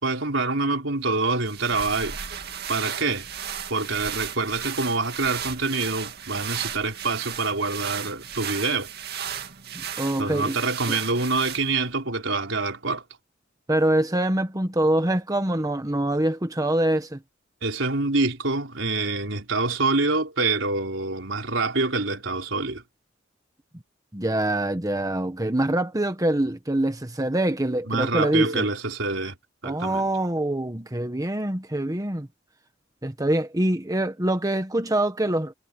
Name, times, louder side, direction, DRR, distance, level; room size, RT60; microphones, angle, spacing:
voice 1, 0.0-2.2 2.7-3.3 3.7-8.9 10.2-13.0 17.6-22.8 27.8-29.3 29.6-30.1, right 3 dB, 85° right, 4.2 m, -26 dB
sound 1, 1.3-11.9, right 8 dB, 55° right, 2.2 m, -35 dB
voice 2, 9.7-10.6 10.9-11.0 13.7-17.2 24.1-28.7 29.6-32.3 33.0-35.5, right 1 dB, 20° right, 1.4 m, -24 dB
head